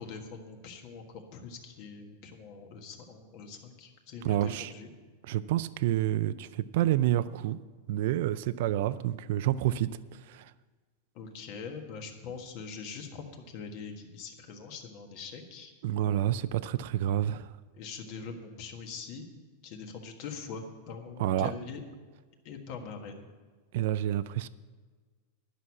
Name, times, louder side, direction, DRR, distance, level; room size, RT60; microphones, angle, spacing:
voice 1, 0.0-4.9 11.1-15.7 17.7-19.2 19.6-21.8 22.4-23.3, left 5 dB, 40° left, 4 dB, 1.5 m, -43 dB
voice 2, 4.2-4.7 5.3-7.6 7.9-9.9 10.3-10.4 15.8-17.5 21.2-21.5 23.7-24.5, right 12 dB, 55° right, 15 dB, 0.4 m, -28 dB
11.5 x 6.3 x 8.4 m, 1.4 s
supercardioid pair, 170°, 0 cm